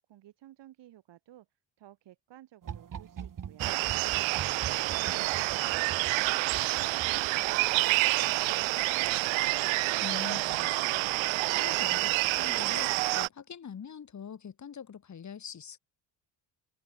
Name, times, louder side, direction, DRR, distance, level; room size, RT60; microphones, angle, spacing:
voice 1, 0.0-1.5 1.8-3.7 4.5-9.7, right 13 dB, 70° right, 6.7 m, -54 dB
sound 1, 2.6-7.8 9.6-9.9 10.3-10.4, right 8 dB, 45° right, 7.0 m, -43 dB
sound 2, 3.6-13.3, right 23 dB, 85° right, 0.7 m, -28 dB
voice 2, 10.0-11.1 11.4-15.8, left 7 dB, 40° left, 4.3 m, -44 dB
open air
cardioid pair, 115°, 45 cm